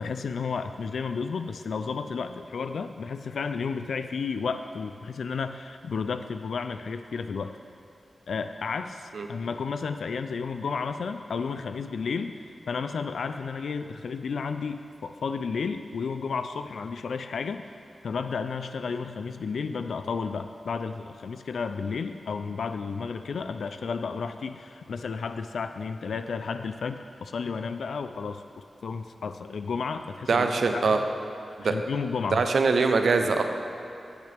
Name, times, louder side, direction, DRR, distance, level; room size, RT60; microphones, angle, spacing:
voice 1, 0.0-7.5 8.3-12.3 12.7-17.6 18.0-28.4 28.8-30.5 30.7-31.0 31.6-32.5, left 5 dB, 85° left, 9 dB, 0.3 m, -32 dB
voice 2, 30.3-31.0 31.6-31.7 32.3-33.4, right 4 dB, 75° right, 6 dB, 0.6 m, -23 dB
15.5 x 6.6 x 3.4 m, 2.7 s
wide cardioid pair, 75°, 0 cm